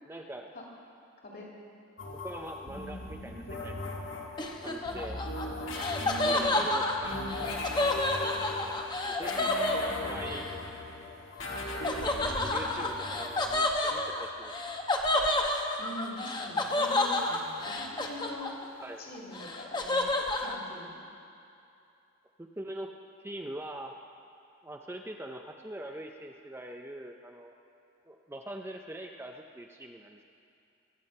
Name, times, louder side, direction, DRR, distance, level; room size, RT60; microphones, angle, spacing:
voice 1, 0.1-0.5 2.2-4.0 4.6-5.2 6.2-7.6 9.1-9.5 10.1-10.6 11.7-14.5 18.8-19.0 22.4-22.9 23.2-23.9 24.6-27.5 28.1-30.2, right 1 dB, 10° right, 3 dB, 0.5 m, -43 dB
sound 1, 2.0-14.5 16.6-18.2, left 2 dB, 70° left, 1.6 m, -39 dB
Laughter, 4.4-10.4 11.8-18.8 19.1-20.6, left 2 dB, 20° left, 0.9 m, -30 dB
voice 2, 6.0-6.6 9.3-10.1 15.8-18.5 19.0-21.0, left 1 dB, 45° left, -2 dB, 2.6 m, -43 dB
22.5 x 7.7 x 5.4 m, 2.6 s
head